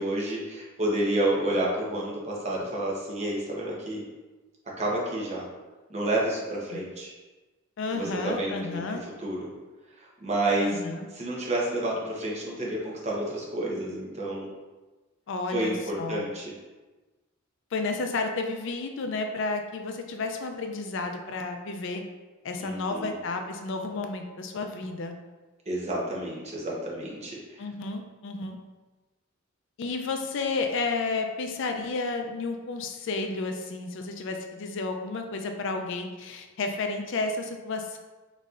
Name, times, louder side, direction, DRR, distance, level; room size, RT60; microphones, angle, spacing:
voice 1, 0.0-4.0 4.8-5.5 5.9-7.1 7.9-9.5 10.2-10.7 11.2-14.5 15.5-16.5 22.6-23.2 25.7-27.4, right 1 dB, 35° right, -4 dB, 0.9 m, -29 dB
voice 2, 7.8-9.0 10.6-11.1 15.3-16.2 17.7-22.0 22.4-25.1 27.6-28.6 29.8-38.0, left 3 dB, 65° left, 5 dB, 0.4 m, -32 dB
4.1 x 4.0 x 2.4 m, 1.2 s
head